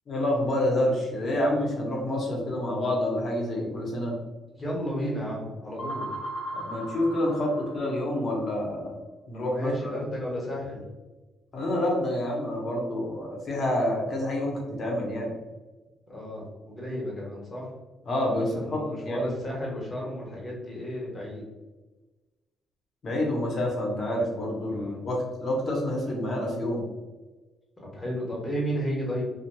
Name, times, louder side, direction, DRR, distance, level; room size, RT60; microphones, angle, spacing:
voice 1, 0.1-4.1 6.5-8.9 9.3-9.9 11.5-15.3 18.1-19.3 23.0-26.8, left 1 dB, 50° left, -2 dB, 0.9 m, -28 dB
voice 2, 4.5-6.1 9.5-10.8 16.1-17.7 18.5-21.4 24.7-25.0 27.8-29.2, equal, 25° left, -4 dB, 1.2 m, -33 dB
sound 1, 5.8-8.4, right 1 dB, 90° left, 1.0 m, -37 dB
2.9 x 2.2 x 2.2 m, 1.2 s
cardioid pair, 90°, 0 cm